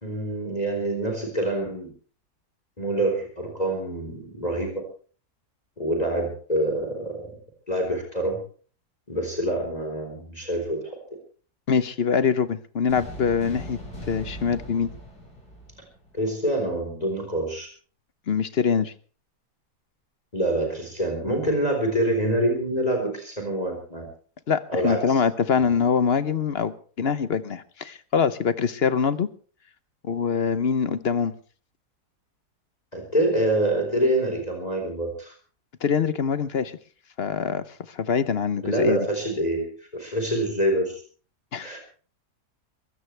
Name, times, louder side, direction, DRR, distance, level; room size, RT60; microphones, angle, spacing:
voice 1, 0.0-1.9 2.8-4.7 5.8-7.2 7.7-8.4 9.1-10.9 16.1-17.7 20.3-24.1 24.7-25.2 32.9-35.3 38.6-41.0 41.6-41.8, right 1 dB, 20° left, 2 dB, 4.3 m, -26 dB
voice 2, 11.7-13.8 14.1-14.9 18.3-18.9 24.5-29.3 30.0-31.3 35.8-36.7 37.2-39.1 41.5-41.7, left 6 dB, 45° left, 14 dB, 0.9 m, -24 dB
sound 1, 12.9-16.3, right 1 dB, 70° left, 8.4 m, -40 dB
22.0 x 16.5 x 3.3 m, 0.42 s
omnidirectional pair, 1.8 m